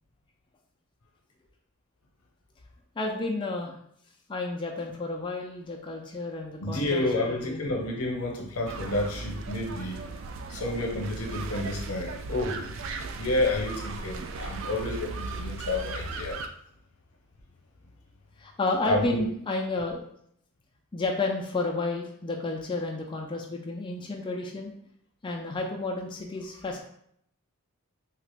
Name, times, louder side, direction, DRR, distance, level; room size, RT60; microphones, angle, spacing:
voice 1, 3.0-3.7 4.3-7.7 16.1-16.2 18.4-20.0 20.9-24.7 25.2-26.8, left 3 dB, 20° left, 0 dB, 0.3 m, -31 dB
voice 2, 6.6-10.0 10.5-12.6 13.2-16.4 18.8-19.3, left 2 dB, 90° left, 1 dB, 0.7 m, -30 dB
sound 1, 8.7-16.5, right 3 dB, 60° right, 0.3 m, -37 dB
2.9 x 2.4 x 3.3 m, 0.71 s
head